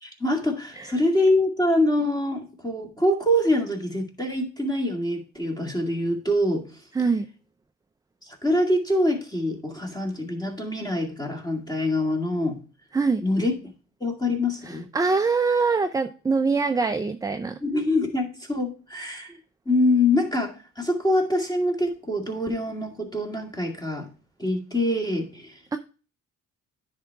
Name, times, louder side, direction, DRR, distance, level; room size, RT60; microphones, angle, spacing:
voice 1, 0.0-6.7 8.3-12.6 13.2-13.5 14.0-14.9 17.6-19.4 19.7-24.1 24.4-25.6, left 1 dB, 15° left, 0 dB, 2.2 m, -25 dB
voice 2, 6.9-7.3 12.9-13.2 14.6-17.6 25.7-25.8, right 4 dB, 10° right, 8 dB, 0.4 m, -23 dB
10.0 x 3.6 x 4.6 m, 0.36 s
cardioid pair, 90°, 30 cm